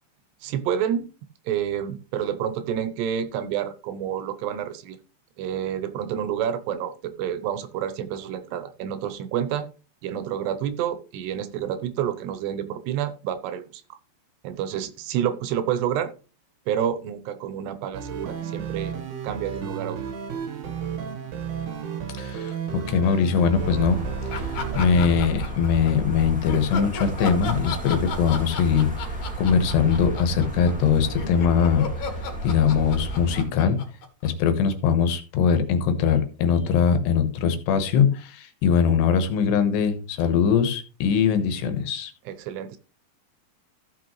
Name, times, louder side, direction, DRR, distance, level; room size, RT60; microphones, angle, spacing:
voice 1, 0.4-1.1 1.5-5.0 5.4-9.7 10.0-14.0 14.4-16.1 16.7-18.9 19.2-20.0 42.3-42.8, right 9 dB, 80° right, 11 dB, 3.0 m, -29 dB
sound 1, 17.9-25.2, right 7 dB, 60° right, 2.3 m, -33 dB
voice 2, 22.2-24.0 24.4-24.5 24.8-32.1 32.4-33.8 34.2-42.1, left 7 dB, 80° left, 9 dB, 3.3 m, -22 dB
sound 2, 23.5-33.4, right 2 dB, 5° right, 1.0 m, -32 dB
sound 3, 24.3-25.9 26.5-34.7, left 4 dB, 55° left, 2.6 m, -34 dB
14.5 x 6.5 x 3.1 m, 0.34 s
omnidirectional pair, 4.9 m